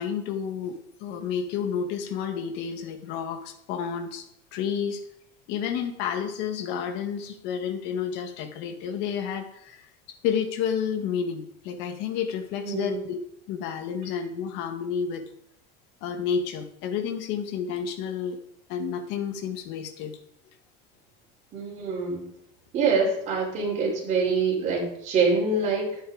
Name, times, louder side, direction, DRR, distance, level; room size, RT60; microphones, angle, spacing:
voice 1, 0.0-4.3 4.5-5.0 5.5-9.9 10.2-13.2 13.5-15.2 16.0-18.4 18.7-20.2, left 7 dB, 60° left, 5 dB, 1.9 m, -30 dB
voice 2, 12.6-13.0 21.5-22.2 22.7-26.0, right 4 dB, 35° right, -3 dB, 5.0 m, -25 dB
11.0 x 8.9 x 5.0 m, 0.72 s
cardioid pair, 160°, 21 cm